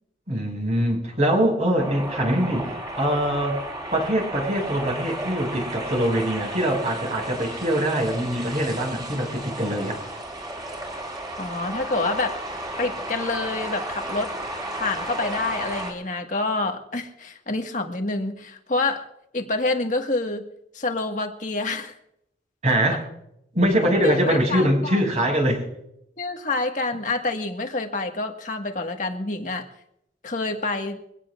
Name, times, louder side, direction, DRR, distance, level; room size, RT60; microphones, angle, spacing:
voice 1, 0.3-3.6 3.9-10.0 22.6-23.0 23.5-25.6, right 1 dB, 40° right, 1 dB, 6.2 m, -23 dB
sound 1, 1.8-15.9, right 1 dB, 25° right, 5.8 m, -33 dB
voice 2, 11.4-12.4 12.8-14.3 14.7-19.1 19.3-20.4 20.7-21.9 24.0-25.0 26.2-29.7 30.2-31.0, left 3 dB, 45° left, 4 dB, 1.7 m, -27 dB
24.0 x 17.5 x 2.5 m, 0.77 s
head